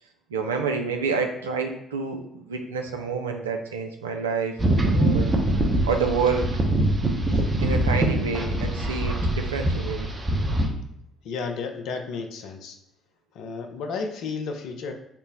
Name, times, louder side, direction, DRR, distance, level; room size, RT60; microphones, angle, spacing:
voice 1, 0.3-4.6 4.8-5.3 5.8-6.5 7.6-10.1, right 5 dB, 85° right, 4 dB, 0.3 m, -28 dB
sound 1, 4.6-10.7, right 1 dB, 30° right, 0.8 m, -23 dB
voice 2, 11.2-12.8 13.3-14.9, left 4 dB, 65° left, 4 dB, 0.5 m, -32 dB
4.4 x 2.0 x 3.9 m, 0.74 s
figure-of-eight pair, 50°, 0 cm